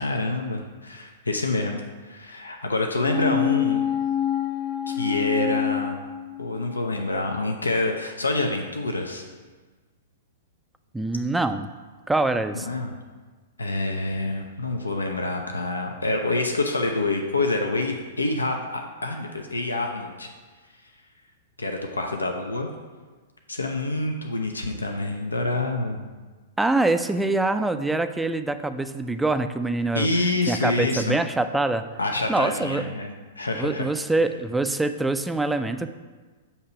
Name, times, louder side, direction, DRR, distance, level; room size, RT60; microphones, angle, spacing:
voice 1, 0.0-3.9 4.9-6.0 6.4-9.2 12.7-13.0 13.6-20.3 21.6-22.7 23.5-26.1 29.9-31.2 32.0-33.9, left 2 dB, 90° left, 3 dB, 0.5 m, -27 dB
sound 1, 3.0-6.8 7.1-7.2, left 10 dB, 30° left, 0.6 m, -26 dB
voice 2, 10.9-11.7 12.1-12.7 26.6-30.1 30.5-31.8 32.3-32.9 33.5-35.9, right 2 dB, 5° right, 9 dB, 0.3 m, -24 dB
6.6 x 2.8 x 5.7 m, 1.4 s
figure-of-eight pair, 110°, 0 cm